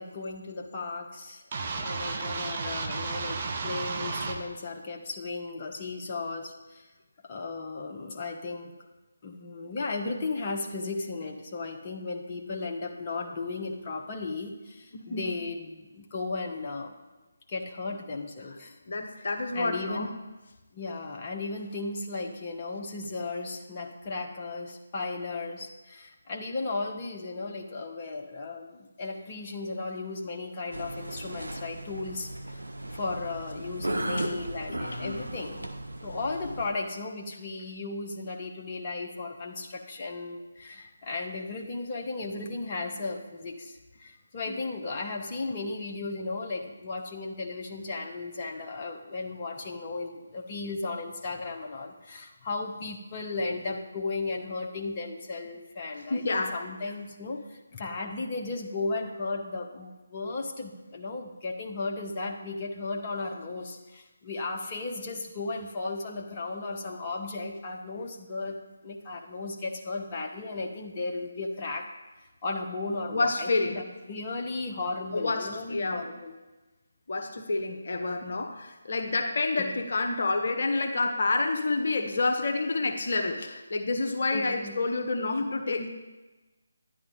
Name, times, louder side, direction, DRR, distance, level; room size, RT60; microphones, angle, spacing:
voice 1, 0.0-1.4 1.8-6.9 7.2-8.7 9.2-16.9 17.5-18.8 19.5-20.1 20.7-32.6 32.9-35.7 36.0-68.6 68.8-71.9 72.4-76.4 79.6-79.7 84.3-84.7, left 3 dB, 30° left, 1 dB, 1.1 m, -35 dB
sound 1, 1.5-4.4, right 4 dB, 35° right, 1.1 m, -33 dB
voice 2, 14.9-15.3 18.9-20.1 34.2-34.3 34.8-35.2 44.5-44.6 56.1-56.6 73.1-73.8 75.1-76.1 77.1-85.9, left 3 dB, 55° left, 5 dB, 1.0 m, -29 dB
sound 2, 30.7-36.7, right 1 dB, 75° right, 1.0 m, -36 dB
11.0 x 10.5 x 3.9 m, 1.1 s
figure-of-eight pair, 150°, 0 cm